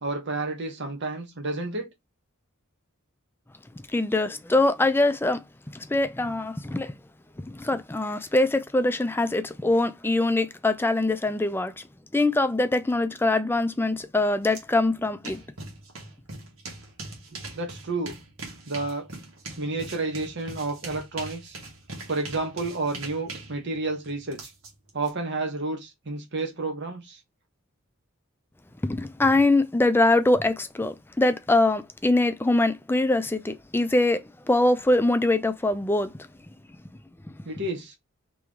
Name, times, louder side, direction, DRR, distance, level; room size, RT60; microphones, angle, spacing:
voice 1, 0.0-1.9 17.5-18.2 18.7-19.1 19.6-21.6 22.1-24.4 24.9-27.2 37.4-37.9, right 2 dB, 55° right, 1.2 m, -30 dB
voice 2, 3.9-5.4 5.7-6.9 7.4-11.8 12.1-15.4 28.8-36.1, left 2 dB, 10° left, 0.5 m, -23 dB
sound 1, 14.5-14.6 14.9-25.1, right 3 dB, 75° right, 1.8 m, -41 dB
4.6 x 3.1 x 3.5 m
head